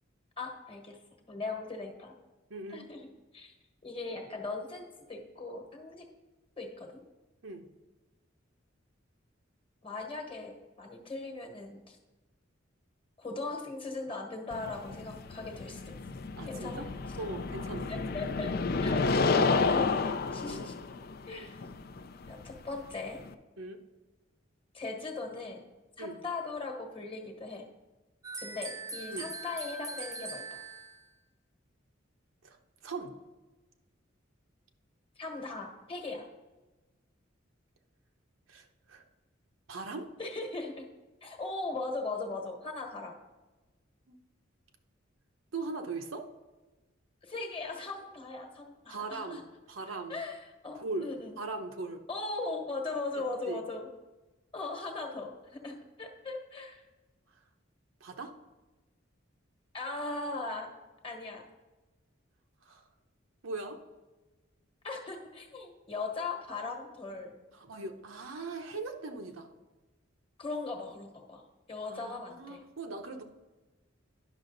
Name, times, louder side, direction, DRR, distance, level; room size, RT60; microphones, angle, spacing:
voice 1, 0.4-1.0 1.3-2.1 2.7-3.1 3.3-3.5 3.8-6.0 6.6-7.0 9.8-12.0 13.2-15.9 16.4-16.8 17.9-18.5 18.8-19.0 19.3-20.7 21.3-21.6 22.3-23.2 24.7-25.6 26.0-27.6 28.4-30.6 35.2-36.2 40.2-40.8 41.2-43.2 47.2-49.4 50.1-51.4 52.1-53.9 54.5-56.8 59.7-60.7 61.0-61.4 64.8-67.3 70.4-71.4 71.7-72.6, left 3 dB, 25° left, 2 dB, 1.2 m, -39 dB
voice 2, 2.5-2.8 7.4-7.6 16.4-16.9 17.2-18.2 20.5-20.7 23.6-23.8 26.0-26.2 29.1-29.3 32.4-32.6 32.8-33.1 38.5-39.0 39.7-40.1 44.1-44.2 45.5-46.3 48.9-50.2 50.7-51.1 51.4-52.0 53.2-53.6 58.0-58.3 62.6-62.9 63.4-63.8 67.5-69.5 71.8-73.2, right 3 dB, 85° right, 4 dB, 0.9 m, -40 dB
sound 1, 14.5-23.3, left 4 dB, 50° left, 0.4 m, -31 dB
sound 2, 28.2-31.1, right 3 dB, 15° right, 0.7 m, -41 dB
10.5 x 6.1 x 4.0 m, 1.2 s
head